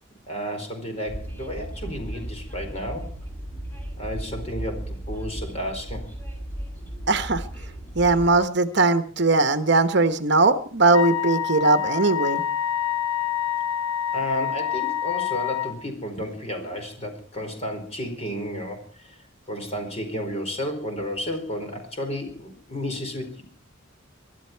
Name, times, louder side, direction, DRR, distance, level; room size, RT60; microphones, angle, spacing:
voice 1, 0.3-3.1 4.0-6.1 14.1-19.2 19.5-23.4, equal, 30° left, 4 dB, 4.5 m, -32 dB
Train, 1.1-8.3, right 1 dB, 10° left, 5.0 m, -35 dB
voice 2, 7.1-7.4 8.0-12.4, right 3 dB, 55° right, 10 dB, 1.0 m, -20 dB
Wind instrument woodwind instrument, 10.9-15.8, left 10 dB, 80° left, 1.5 m, -27 dB
23.5 x 12.5 x 4.5 m, 0.43 s
head